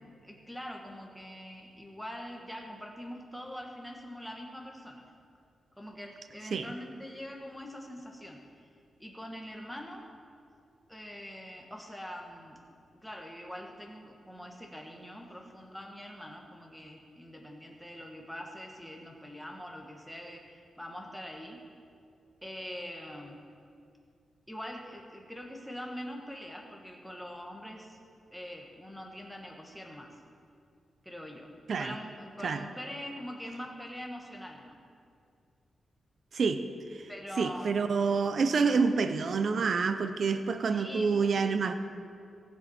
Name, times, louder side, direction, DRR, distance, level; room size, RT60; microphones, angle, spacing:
voice 1, 0.2-5.1 5.8-8.4 9.0-10.1 10.9-12.6 13.0-21.6 22.4-23.4 24.5-28.0 28.3-30.1 31.0-31.5 31.8-34.8 37.1-37.7 40.7-41.3, equal, ahead, 0 dB, 1.2 m, -43 dB
voice 2, 36.3-37.1 37.4-41.7, right 5 dB, 50° right, 9 dB, 0.5 m, -28 dB
17.5 x 7.3 x 4.3 m, 2.4 s
wide cardioid pair, 165°, 0 cm